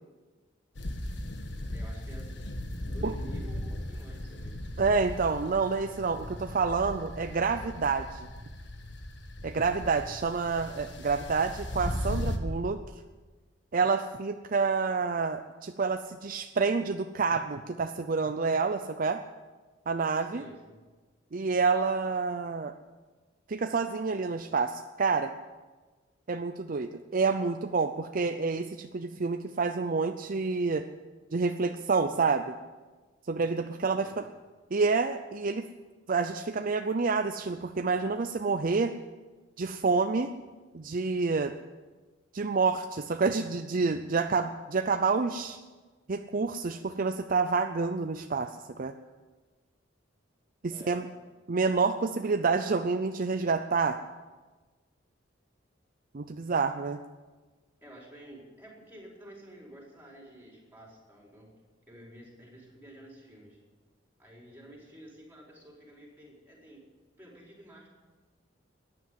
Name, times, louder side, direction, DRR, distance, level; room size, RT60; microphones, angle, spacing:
sound 1, 0.8-12.4, left 1 dB, 65° left, 1.6 m, -37 dB
voice 1, 1.7-2.4 2.9-4.6 20.2-20.8 34.0-34.2 50.7-51.0 57.8-61.5 61.9-63.6 64.2-66.8 67.2-67.9, right 1 dB, 10° right, -2 dB, 4.6 m, -50 dB
voice 2, 4.8-8.3 9.4-12.8 13.7-19.2 19.9-20.4 21.3-22.7 23.5-25.3 26.3-30.9 31.3-32.5 33.3-34.1 34.7-35.7 36.1-38.9 39.6-40.3 40.7-41.5 42.3-45.6 46.1-48.5 48.8-48.9 50.6-51.1 51.5-54.0 56.1-57.0, right 4 dB, 45° right, 8 dB, 0.6 m, -28 dB
14.0 x 10.0 x 9.3 m, 1.3 s
head